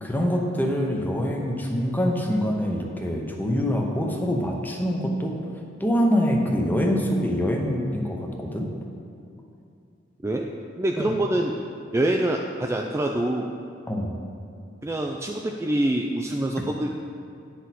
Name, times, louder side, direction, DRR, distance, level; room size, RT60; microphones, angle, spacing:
voice 1, 0.0-5.4 5.8-8.7 11.0-11.1 13.9-14.1, equal, 10° left, 1 dB, 0.8 m, -25 dB
voice 2, 10.8-11.6 11.9-13.5 14.8-16.9, right 1 dB, 15° right, 1 dB, 0.3 m, -25 dB
9.3 x 6.3 x 4.2 m, 2.5 s
head